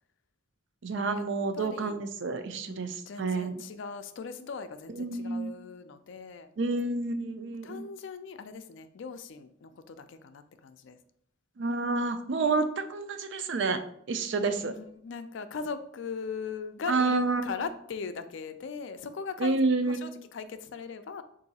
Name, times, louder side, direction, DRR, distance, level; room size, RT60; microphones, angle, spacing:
voice 1, 0.8-3.5 4.9-5.5 6.6-7.9 11.6-13.8 14.1-14.7 16.9-17.5 19.4-20.1, right 3 dB, 60° right, 8 dB, 0.4 m, -29 dB
voice 2, 1.5-2.0 2.6-6.5 7.6-11.0 14.4-21.2, left 5 dB, 65° left, 10 dB, 0.4 m, -39 dB
4.6 x 2.6 x 4.1 m, 0.67 s
head